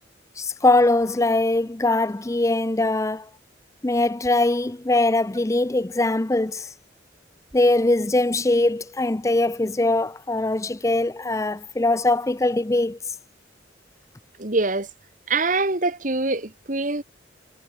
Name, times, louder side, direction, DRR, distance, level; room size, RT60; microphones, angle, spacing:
voice 1, 0.4-3.3 3.8-6.7 7.5-13.2, left 2 dB, 15° left, 0.5 m, -21 dB
voice 2, 14.4-14.9 15.3-17.0, right 3 dB, 45° right, 1.8 m, -24 dB
head